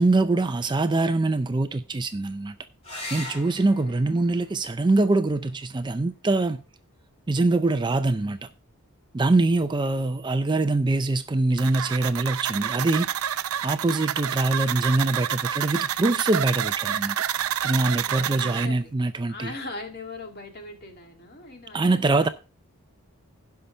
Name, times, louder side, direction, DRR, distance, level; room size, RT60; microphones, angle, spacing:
voice 1, 0.0-2.5 3.1-6.6 7.3-8.4 9.1-13.3 13.6-17.2 17.6-19.5 21.7-22.3, right 2 dB, 20° right, 0.4 m, -23 dB
sound 1, 2.8-7.9 9.7-10.4 13.8-13.9 14.3-14.4, left 2 dB, 30° left, 3.9 m, -43 dB
voice 2, 3.6-4.1 8.3-8.5 9.5-10.2 18.0-19.0 19.3-22.3, left 3 dB, 45° left, 2.0 m, -41 dB
sound 2, 11.6-18.7, right 10 dB, 80° right, 0.5 m, -28 dB
16.5 x 5.7 x 3.4 m
head